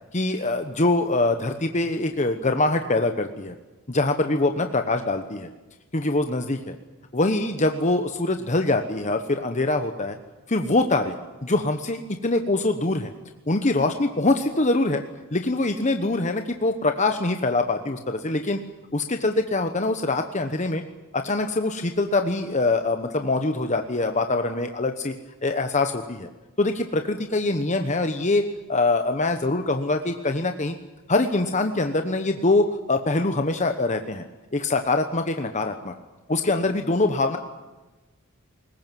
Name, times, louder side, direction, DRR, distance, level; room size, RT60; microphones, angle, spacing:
voice 1, 0.1-3.6 3.9-5.5 5.9-6.7 7.1-10.2 10.5-11.2 11.4-13.1 13.5-15.0 15.3-18.6 18.9-20.8 21.1-25.1 25.4-26.3 26.6-28.4 28.7-30.7 31.1-34.2 34.5-35.9 36.3-37.4, left 2 dB, 35° left, 6 dB, 1.1 m, -24 dB
21.5 x 20.0 x 9.2 m, 1.1 s
head